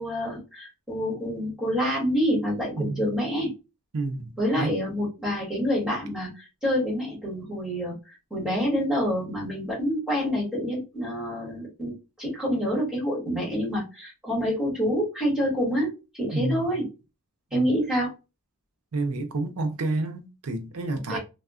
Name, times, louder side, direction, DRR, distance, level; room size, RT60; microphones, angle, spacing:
voice 1, 0.0-3.5 4.4-7.9 8.3-11.9 12.2-16.9 17.5-18.1 21.1-21.2, equal, 5° right, 1.7 m, -27 dB
voice 2, 2.8-3.1 3.9-4.8 16.3-16.8 17.5-17.7 18.9-21.2, right 2 dB, 75° right, 0.6 m, -30 dB
3.5 x 2.3 x 2.3 m
head